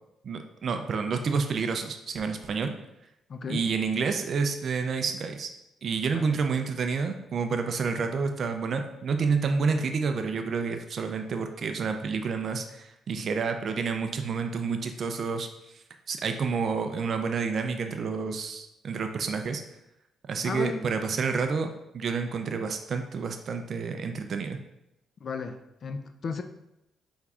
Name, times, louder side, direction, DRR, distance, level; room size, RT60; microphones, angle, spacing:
voice 1, 0.2-2.7 3.5-5.5 5.8-15.5 15.7-19.6 20.3-24.6, right 5 dB, 55° right, 6 dB, 0.4 m, -29 dB
voice 2, 3.3-3.7 6.1-6.3 20.4-20.9 25.2-26.4, left 5 dB, 50° left, 8 dB, 0.4 m, -34 dB
5.7 x 3.5 x 2.4 m, 0.87 s
cardioid pair, 90°, 0 cm